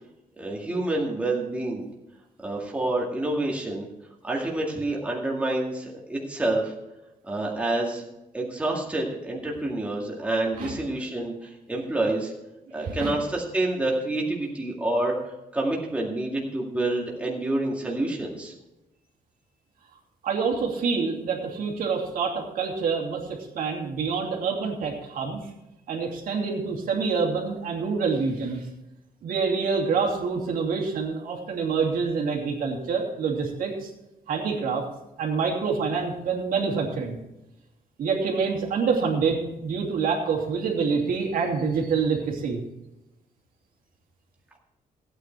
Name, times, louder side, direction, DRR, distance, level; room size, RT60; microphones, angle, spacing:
voice 1, 0.4-1.9 2.4-3.9 4.2-6.7 7.2-8.0 8.3-12.3 12.7-15.2 15.5-18.5, right 2 dB, 10° right, -2 dB, 2.0 m, -28 dB
voice 2, 12.8-13.1 20.2-25.4 25.9-28.6 29.2-33.9 34.3-34.8 35.2-37.2 38.0-42.6, right 5 dB, 70° right, 0 dB, 2.7 m, -26 dB
15.5 x 9.0 x 4.5 m, 0.95 s
wide cardioid pair, 165°, 15 cm